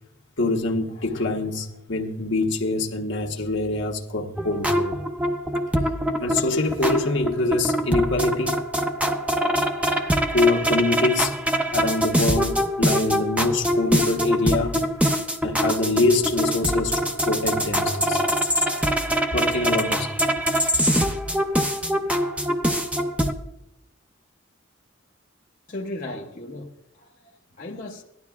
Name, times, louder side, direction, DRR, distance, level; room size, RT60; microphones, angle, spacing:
voice 1, 0.4-4.9 6.2-8.6 10.3-11.3 11.7-14.8 15.4-18.2 19.3-20.1 21.9-22.0, left 2 dB, 60° left, 1.2 m, -24 dB
sound 1, 4.4-23.3, equal, 5° right, 0.6 m, -24 dB
voice 2, 25.7-28.0, left 2 dB, 40° left, 0.8 m, -36 dB
17.5 x 12.0 x 2.4 m
head